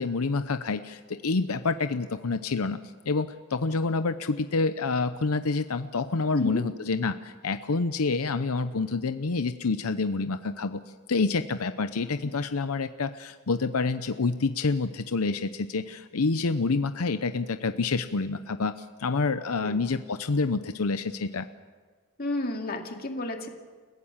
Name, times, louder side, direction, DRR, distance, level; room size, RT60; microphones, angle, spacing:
voice 1, 0.0-2.8 3.1-10.8 11.1-21.5, left 4 dB, 90° left, 10 dB, 0.7 m, -28 dB
voice 2, 22.2-23.5, left 1 dB, 45° left, 3 dB, 2.3 m, -31 dB
30.0 x 16.0 x 7.3 m, 1.5 s
head